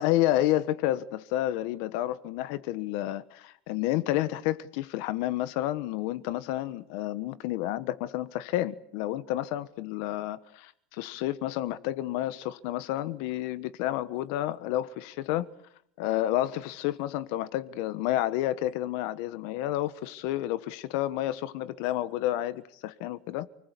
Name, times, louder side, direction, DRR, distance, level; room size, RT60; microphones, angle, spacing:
voice 1, 0.0-15.5 16.0-23.5, left 14 dB, 65° left, 1.3 m, -30 dB
29.5 x 20.0 x 8.3 m
supercardioid pair, 140°, 0 cm